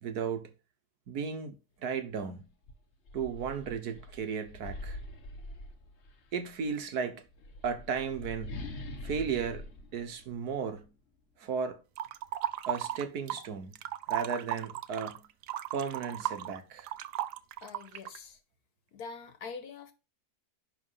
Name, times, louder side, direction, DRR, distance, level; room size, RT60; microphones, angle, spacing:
voice 1, 0.0-0.5 1.1-2.4 3.1-5.0 6.3-7.2 7.6-8.6 9.0-9.7 9.9-10.9 11.4-11.8 12.7-13.7 14.1-15.3 15.7-16.9, right 6 dB, 75° right, 1.6 m, -35 dB
sound 1, 2.1-2.2 2.6-6.3 7.2-10.9, left 1 dB, 45° left, 1.3 m, -44 dB
sound 2, 12.0-13.5 13.7-18.2, right 12 dB, 90° right, 1.2 m, -35 dB
voice 2, 17.6-18.4 18.9-19.9, left 5 dB, 70° left, 1.7 m, -44 dB
10.5 x 3.9 x 5.6 m
omnidirectional pair, 1.7 m